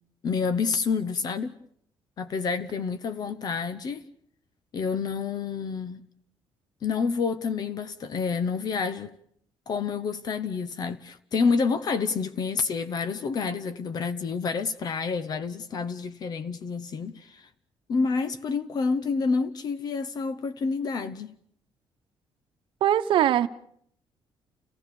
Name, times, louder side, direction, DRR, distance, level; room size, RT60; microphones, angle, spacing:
voice 1, 0.2-1.6 2.2-4.0 4.7-6.0 6.8-9.1 9.7-17.5 17.9-21.3, left 5 dB, 45° left, 0.9 m, -28 dB
voice 2, 22.8-23.5, right 11 dB, 65° right, 1.0 m, -21 dB
29.5 x 16.0 x 7.0 m
cardioid pair, 150°, 9 cm